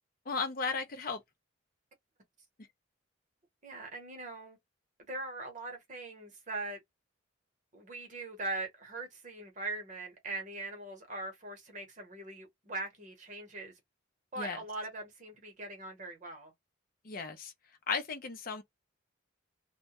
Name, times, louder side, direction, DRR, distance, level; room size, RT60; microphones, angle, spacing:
voice 1, 0.3-1.2 14.4-14.6 17.0-17.5 17.9-18.6, left 5 dB, 45° left, 0.5 m, -35 dB
voice 2, 3.6-4.6 5.1-6.8 7.7-13.7 14.3-16.5, right 2 dB, 40° right, 0.9 m, -41 dB
2.1 x 2.1 x 2.8 m
head